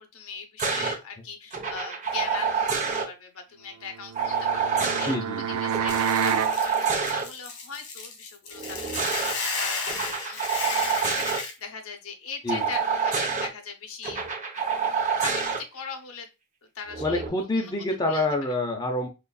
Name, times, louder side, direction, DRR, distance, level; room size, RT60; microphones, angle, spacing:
voice 1, 0.0-14.2 15.2-16.3 16.7-17.2 17.5-17.7 18.1-18.5, left 5 dB, 65° left, 5 dB, 0.8 m, -40 dB
sound 1, 0.6-1.0 1.5-3.1 4.1-5.2 5.7-7.2 8.5-9.3 9.9-11.4 12.5-13.5 14.0-15.6 16.9-17.3, right 5 dB, 35° right, 0.7 m, -27 dB
sound 2, 4.0-6.6, right 8 dB, 70° right, 0.4 m, -28 dB
voice 2, 5.0-5.6 12.4-12.7 17.0-19.1, left 2 dB, 20° left, 1 dB, 0.6 m, -27 dB
Hiss / Boiling, 5.9-11.5, left 4 dB, 85° left, 1.3 m, -33 dB
4.0 x 3.1 x 2.3 m, 0.25 s
head